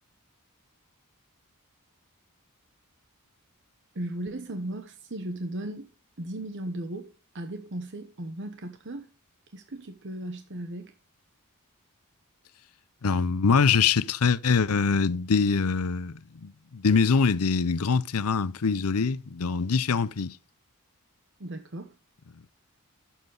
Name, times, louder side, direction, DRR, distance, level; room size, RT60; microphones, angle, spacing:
voice 1, 3.9-5.9 6.2-9.1 9.5-10.9 21.4-21.9, right 1 dB, 55° right, 1.0 m, -36 dB
voice 2, 13.0-20.4, left 5 dB, 75° left, 0.6 m, -24 dB
12.0 x 7.3 x 3.9 m
head